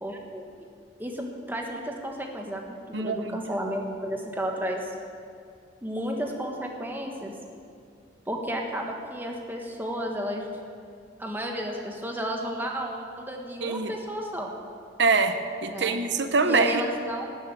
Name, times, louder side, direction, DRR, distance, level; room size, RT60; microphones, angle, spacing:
voice 1, 0.0-0.4 1.0-4.9 5.8-7.3 8.3-10.5 11.2-14.5 15.7-16.0 16.4-17.2, equal, 10° right, 1 dB, 1.4 m, -32 dB
voice 2, 2.9-3.4 13.6-13.9 15.0-16.8, right 4 dB, 75° right, 8 dB, 0.9 m, -24 dB
12.5 x 7.4 x 9.1 m, 2.4 s
head